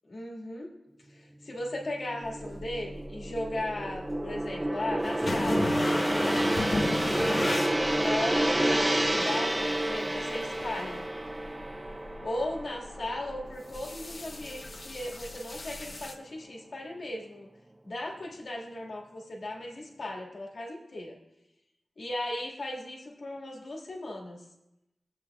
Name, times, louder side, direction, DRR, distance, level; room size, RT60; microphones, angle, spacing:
voice 1, 0.1-0.7 1.1-7.7 8.0-11.0 12.2-17.5 17.8-21.2 22.0-24.4, left 1 dB, 75° left, -2 dB, 1.8 m, -37 dB
Gong, 1.7-14.1 14.5-14.7, right 1 dB, 15° right, 0.3 m, -30 dB
liner bathroom gurgles flush, 2.2-16.1, left 2 dB, 55° left, 0.9 m, -38 dB
22.5 x 7.9 x 2.3 m, 0.92 s
wide cardioid pair, 100°, 0 cm